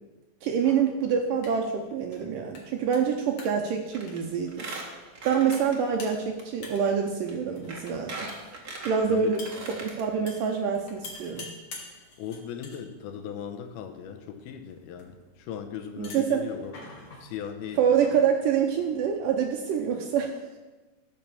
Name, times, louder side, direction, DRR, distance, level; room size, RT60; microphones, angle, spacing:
voice 1, 0.4-4.7 5.2-8.3 8.8-9.4 9.7-11.5 16.0-16.4 17.8-20.4, right 7 dB, 75° right, 3 dB, 2.1 m, -26 dB
sound 1, 0.5-19.4, left 3 dB, 45° left, 2.4 m, -49 dB
Squeak, 3.9-4.2 4.5-6.1 6.4-6.5 7.3-7.4 7.7-10.0 10.4-10.5 10.7-10.8, right 3 dB, 45° right, 1.2 m, -39 dB
voice 2, 12.2-16.8 17.2-17.8, left 8 dB, 75° left, 7 dB, 2.6 m, -38 dB
14.0 x 6.1 x 7.0 m, 1.2 s
omnidirectional pair, 4.6 m